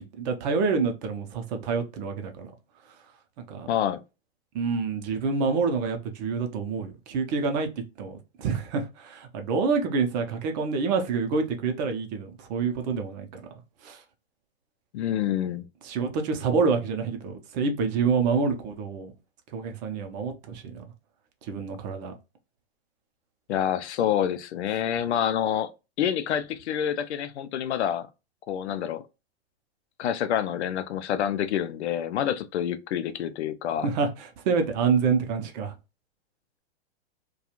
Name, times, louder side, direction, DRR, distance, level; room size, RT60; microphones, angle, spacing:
voice 1, 0.2-2.5 3.5-3.7 4.5-7.7 8.0-13.3 13.8-14.0 15.8-19.1 19.5-20.6 21.5-22.1 33.8-35.7, right 5 dB, 40° right, 0.6 m, -27 dB
voice 2, 3.7-4.0 14.9-15.6 23.5-25.7 26.0-28.1 28.5-29.0 30.0-33.9, left 9 dB, 85° left, 0.5 m, -27 dB
2.4 x 2.3 x 2.9 m
hypercardioid pair, 135°, 33 cm